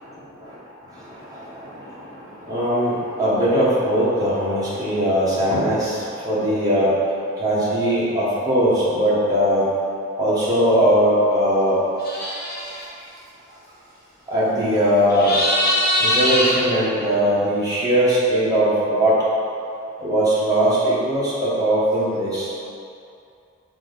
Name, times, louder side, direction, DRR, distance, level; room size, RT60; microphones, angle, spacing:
voice 1, 1.0-6.9 7.4-9.6 10.2-11.9 14.3-15.3 16.0-19.2 20.0-22.5, equal, 20° right, -9 dB, 1.5 m, -20 dB
sound 1, 12.0-12.8 15.1-16.5, left 1 dB, 50° left, 1.2 m, -21 dB
5.8 x 4.1 x 4.1 m, 2.6 s
head